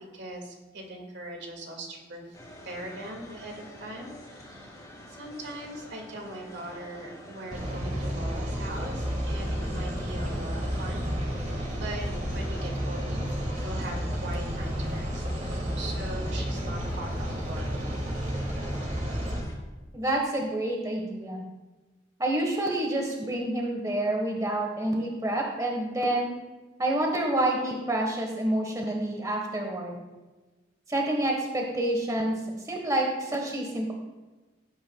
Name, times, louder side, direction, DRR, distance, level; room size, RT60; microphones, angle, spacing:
voice 1, 0.1-2.3 2.6-11.4 11.7-13.3 13.6-15.2 15.8-17.7, right 1 dB, 65° right, 2 dB, 2.0 m, -40 dB
sound 1, 2.3-19.5, left 1 dB, 20° left, 2.9 m, -47 dB
sound 2, 7.5-19.4, equal, 35° right, 1.7 m, -31 dB
voice 2, 19.9-21.4 22.2-26.3 26.8-30.0 30.9-32.4 32.7-33.9, right 1 dB, 20° right, 1 dB, 1.2 m, -28 dB
16.5 x 8.7 x 2.3 m, 1.2 s
head